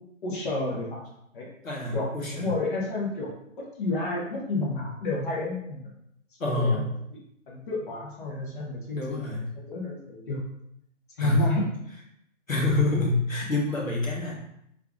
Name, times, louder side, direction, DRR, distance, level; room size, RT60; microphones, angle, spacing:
voice 1, 0.2-1.0 1.3-1.5 1.9-3.3 3.6-5.9 6.4-6.8 7.1-7.2 7.5-9.2 9.5-10.4 11.2-11.7, left 2 dB, 40° left, -2 dB, 0.9 m, -30 dB
voice 2, 1.6-2.5 6.4-6.9 8.9-9.5 11.2-11.5 12.5-14.3, left 2 dB, 90° left, -3 dB, 1.4 m, -26 dB
3.6 x 3.4 x 2.4 m, 0.74 s
figure-of-eight pair, 135°, 39 cm